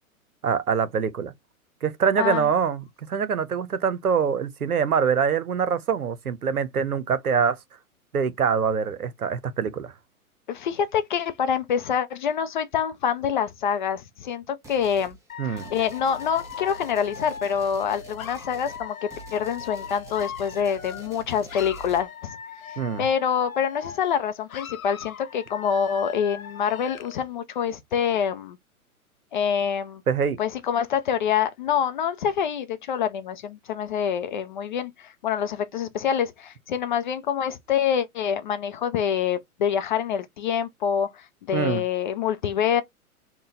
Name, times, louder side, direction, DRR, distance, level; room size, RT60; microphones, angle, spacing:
voice 1, 0.4-1.3 1.8-7.6 8.1-9.9 15.4-15.7 22.8-23.0 30.1-30.4 41.5-41.8, right 6 dB, 80° right, 0.8 m, -24 dB
voice 2, 10.5-15.2 15.5-22.4 22.7-28.6 29.3-30.0 30.4-42.8, left 8 dB, 35° left, 0.5 m, -26 dB
sound 1, 14.6-15.2 15.6-22.0, right 3 dB, 5° right, 0.7 m, -45 dB
Dog / Alarm, 15.3-21.2 21.5-24.2 24.5-27.2, left 7 dB, 70° left, 0.8 m, -40 dB
3.9 x 2.3 x 3.9 m
figure-of-eight pair, 115°, 44 cm